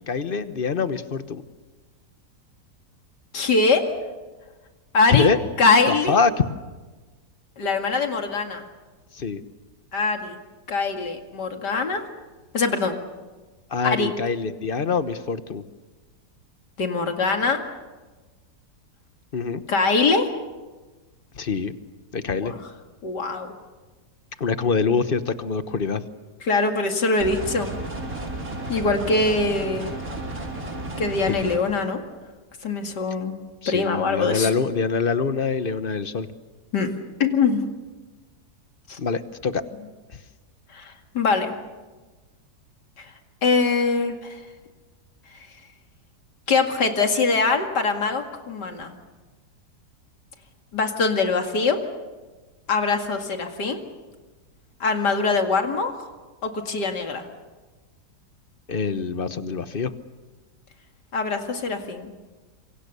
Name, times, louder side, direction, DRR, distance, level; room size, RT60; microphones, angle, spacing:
voice 1, 0.0-1.4 5.1-5.4 5.9-6.4 9.1-9.4 13.7-15.6 19.3-19.6 21.3-21.7 22.1-22.5 24.4-26.0 31.3-31.5 33.6-36.3 39.0-39.6 58.7-59.9, left 5 dB, 40° left, 12 dB, 1.1 m, -24 dB
voice 2, 3.3-3.9 4.9-5.3 5.6-6.2 7.6-8.6 9.9-10.4 10.7-12.0 12.5-13.0 13.8-14.1 16.8-17.6 19.7-20.3 22.4-22.5 23.0-23.6 26.4-27.7 28.7-29.9 31.0-32.0 32.6-33.4 33.7-34.5 36.7-36.9 37.2-37.6 38.9-39.0 40.7-41.5 43.0-43.1 43.4-44.4 46.5-48.9 50.7-51.8 52.7-53.8 54.8-55.9 56.4-57.3 61.1-62.1, left 4 dB, 90° left, 5 dB, 2.8 m, -23 dB
sound 1, 27.2-31.6, right 2 dB, 55° right, 4.5 m, -33 dB
27.0 x 24.5 x 6.9 m, 1.3 s
omnidirectional pair, 1.8 m